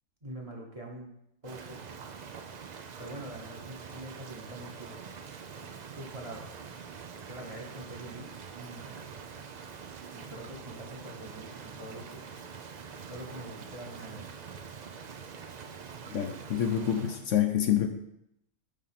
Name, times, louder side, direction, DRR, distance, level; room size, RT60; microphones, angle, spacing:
voice 1, 0.2-1.1 1.4-1.8 3.0-5.0 5.9-6.6 7.3-9.0 10.1-12.3 13.1-14.3, right 1 dB, 30° right, 1 dB, 1.0 m, -44 dB
Rain, 1.4-17.3, right 6 dB, 70° right, 0.4 m, -45 dB
voice 2, 16.1-17.9, left 10 dB, 65° left, 5 dB, 1.0 m, -27 dB
8.7 x 3.7 x 5.8 m, 0.79 s
omnidirectional pair, 1.5 m